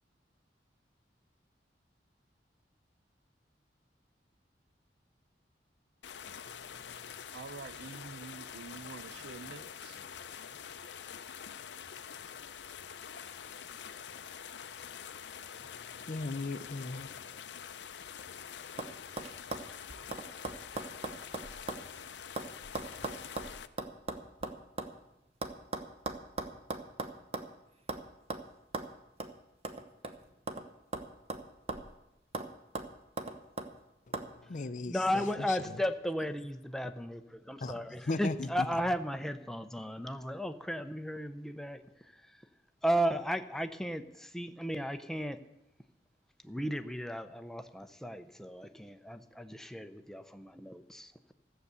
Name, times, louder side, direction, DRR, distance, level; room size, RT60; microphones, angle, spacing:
sound 1, 6.0-23.7, left 8 dB, 90° left, 0.6 m, -46 dB
voice 1, 6.5-7.2 15.6-17.5 34.1-35.6 37.6-38.5, left 3 dB, 45° left, 0.5 m, -39 dB
voice 2, 7.3-10.0, right 5 dB, 70° right, 0.5 m, -47 dB
sound 2, 18.0-18.4 18.8-18.9 19.2-21.9 22.1-24.9 25.4-27.5 27.9-28.0 28.3-28.4 28.7-28.9 29.2-29.3 29.6-30.7 30.9-32.0 32.3-32.5 32.8-33.7 34.1-34.3, right 2 dB, 35° right, 0.9 m, -39 dB
voice 3, 34.8-42.4 42.8-45.4 46.4-51.3, equal, 5° left, 0.6 m, -35 dB
15.0 x 6.8 x 8.2 m
head